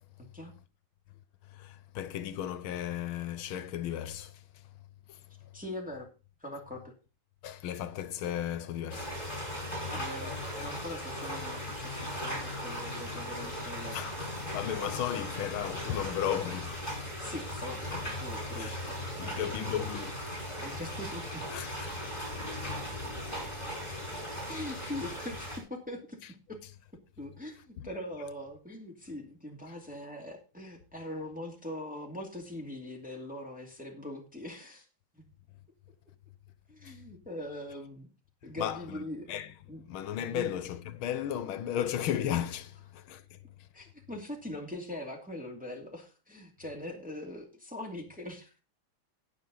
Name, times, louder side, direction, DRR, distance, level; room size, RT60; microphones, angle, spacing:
voice 1, 1.4-4.7 5.1-5.5 7.4-10.0 10.2-10.4 13.9-14.1 14.5-17.0 17.9-18.0 18.6-18.8 19.2-20.2 21.5-22.7 23.3-24.4 27.8-27.9 36.9-37.0 38.4-39.5 39.9-43.7, left 10 dB, 85° left, 1.8 m, -36 dB
voice 2, 5.5-6.1 6.4-6.9 9.9-14.0 17.2-19.7 20.6-21.7 23.9-26.6 27.2-34.9 35.1-35.2 36.7-38.1 38.4-39.3 39.7-39.8 40.3-40.5 43.7-48.5, left 1 dB, 5° right, 2.2 m, -42 dB
sound 1, 8.9-25.6, left 1 dB, 20° left, 5.0 m, -38 dB
18.0 x 6.6 x 3.9 m
omnidirectional pair, 2.2 m